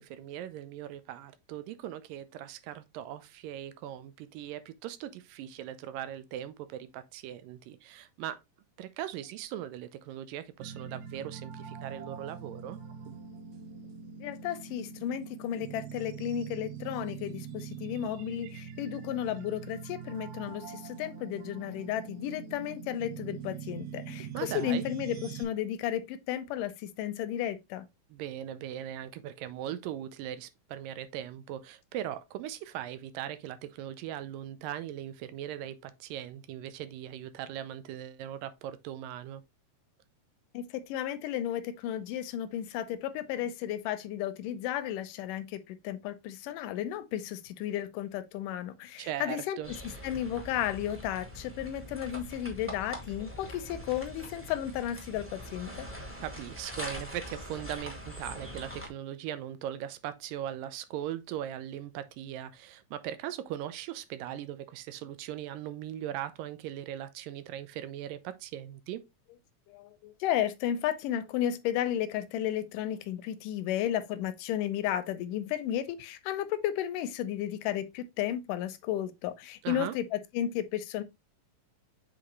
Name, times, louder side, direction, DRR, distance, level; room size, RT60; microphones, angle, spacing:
voice 1, 0.0-8.4 8.8-12.8 24.3-24.9 28.1-39.4 49.0-49.7 56.0-69.0 79.6-80.0, right 11 dB, 90° right, 2.4 m, -39 dB
sound 1, 10.6-25.4, right 7 dB, 70° right, 2.0 m, -43 dB
voice 2, 14.2-27.9 40.5-49.8 50.0-55.9 69.7-81.0, left 11 dB, 85° left, 2.2 m, -33 dB
sound 2, 49.6-58.9, equal, 10° right, 0.6 m, -43 dB
7.6 x 4.2 x 3.1 m
omnidirectional pair, 3.8 m